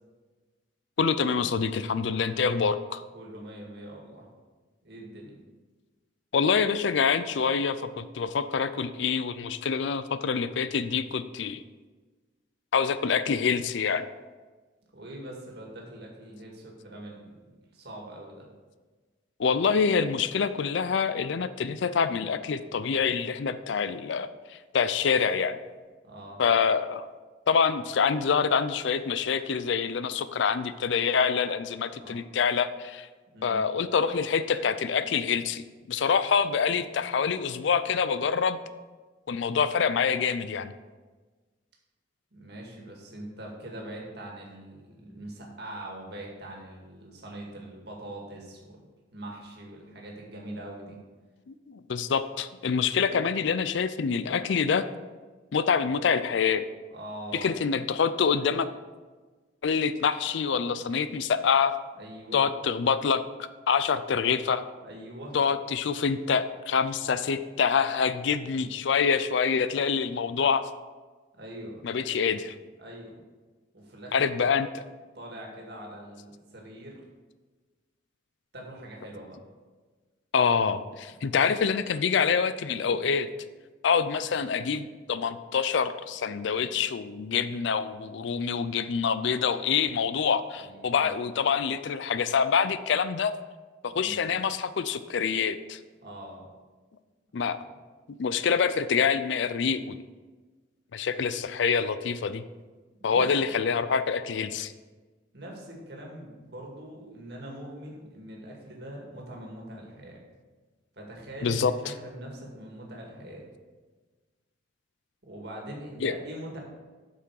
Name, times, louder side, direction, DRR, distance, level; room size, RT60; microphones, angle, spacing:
voice 1, 1.0-3.0 6.3-11.6 12.7-14.1 19.4-25.6 26.4-27.0 27.5-33.1 33.4-35.6 35.9-38.6 39.3-40.7 51.5-54.9 55.5-56.6 57.3-58.7 59.6-61.8 62.3-63.2 63.7-64.6 65.3-70.7 71.8-72.6 74.1-74.7 80.3-83.3 83.8-93.3 93.8-95.8 97.3-97.6 98.1-100.0 100.9-102.4 103.0-104.7 111.4-111.7 116.0-116.1, left 6 dB, 70° left, 13 dB, 0.4 m, -26 dB
voice 2, 3.1-4.3 4.8-5.4 14.9-17.4 17.7-18.5 26.0-26.4 31.9-32.2 33.3-33.6 36.7-36.8 42.3-48.8 49.1-51.0 56.9-57.5 62.0-62.4 64.8-65.4 68.5-68.7 71.4-72.1 72.8-73.2 73.7-74.3 75.1-77.0 78.5-79.4 84.3-84.5 90.6-91.1 93.9-94.3 96.0-96.4 97.5-97.7 103.0-103.3 105.3-110.2 111.0-113.5 115.2-116.6, right 1 dB, 55° right, -1 dB, 2.0 m, -42 dB
8.3 x 5.9 x 4.8 m, 1.3 s
head